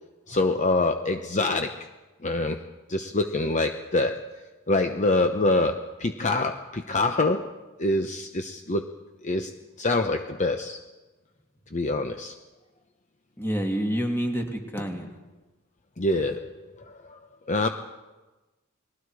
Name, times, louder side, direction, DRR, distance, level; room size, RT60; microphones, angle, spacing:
voice 1, 0.3-1.7 2.2-2.6 2.9-4.3 4.7-7.5 7.8-8.9 9.2-9.5 9.8-10.8 11.7-12.3 16.0-17.2 17.5-17.7, left 2 dB, 35° left, 6 dB, 0.9 m, -25 dB
voice 2, 13.4-15.1, equal, 10° left, 2 dB, 2.5 m, -28 dB
29.5 x 21.0 x 4.9 m, 1.2 s
head